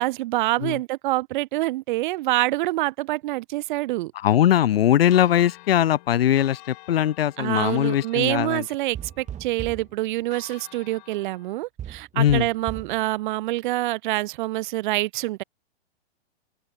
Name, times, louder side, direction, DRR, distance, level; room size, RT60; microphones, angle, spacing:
voice 1, 0.0-4.1 7.4-15.4, right 18 dB, 45° right, 2.0 m, -26 dB
voice 2, 4.2-8.6 12.1-12.5, left 11 dB, 60° left, 2.6 m, -20 dB
Church bell, 5.1-11.6, left 28 dB, 45° left, 5.5 m, -49 dB
sound 1, 8.9-9.9 11.8-13.0, right 10 dB, 20° right, 3.6 m, -36 dB
open air
hypercardioid pair, 115°, 33 cm